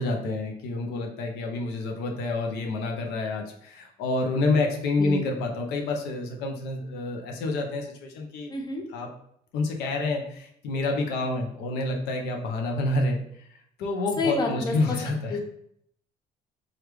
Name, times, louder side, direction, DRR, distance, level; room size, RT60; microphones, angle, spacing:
voice 1, 0.0-8.5 8.9-9.1 9.5-13.2 13.8-15.4, left 2 dB, 90° left, 2 dB, 0.6 m, -28 dB
voice 2, 8.5-8.8 14.2-15.0 15.3-15.4, left 3 dB, 25° left, 2 dB, 0.6 m, -28 dB
3.1 x 2.4 x 3.2 m, 0.70 s
cardioid pair, 110°, 17 cm